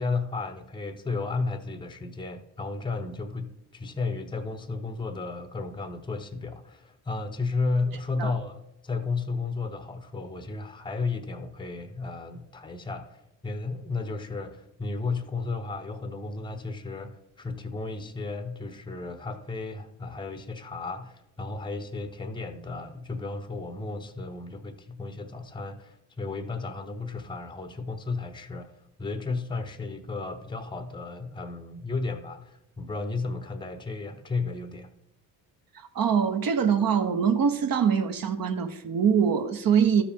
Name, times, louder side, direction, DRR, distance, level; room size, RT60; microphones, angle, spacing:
voice 1, 0.0-28.7 29.0-34.9, left 3 dB, 10° left, 0.8 m, -33 dB
voice 2, 35.7-40.0, right 7 dB, 45° right, 1.0 m, -23 dB
13.0 x 4.9 x 3.5 m
hypercardioid pair, 65°, 49 cm